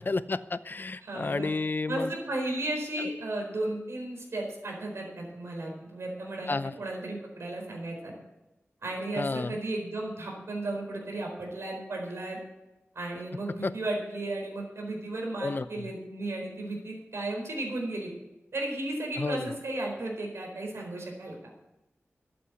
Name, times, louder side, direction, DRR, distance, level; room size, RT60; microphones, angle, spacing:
voice 1, 0.0-2.1 6.5-6.7 9.2-9.6 13.6-13.7 15.4-15.7 19.2-19.5, left 3 dB, 45° left, 14 dB, 0.6 m, -31 dB
voice 2, 1.0-1.5 1.9-8.1 8.8-12.4 12.9-18.1 18.5-21.3, right 2 dB, 85° right, 0 dB, 4.5 m, -34 dB
13.0 x 8.6 x 8.2 m, 0.97 s
wide cardioid pair, 80°, 4 cm